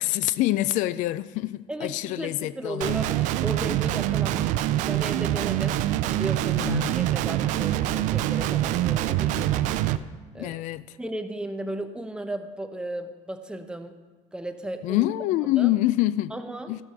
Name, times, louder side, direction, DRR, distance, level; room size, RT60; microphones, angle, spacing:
voice 1, 0.0-3.0 6.6-7.0 10.3-10.8 14.8-16.3 16.7-16.8, left 15 dB, 65° left, 0.4 m, -26 dB
voice 2, 1.7-4.5 4.8-9.8 10.3-10.6 11.0-14.0 14.3-15.1 15.6-15.7 16.3-16.7, right 1 dB, 5° right, 0.8 m, -35 dB
Guitar, 2.8-10.0, right 13 dB, 65° right, 0.5 m, -25 dB
13.5 x 7.6 x 6.4 m
cardioid pair, 130°, 14 cm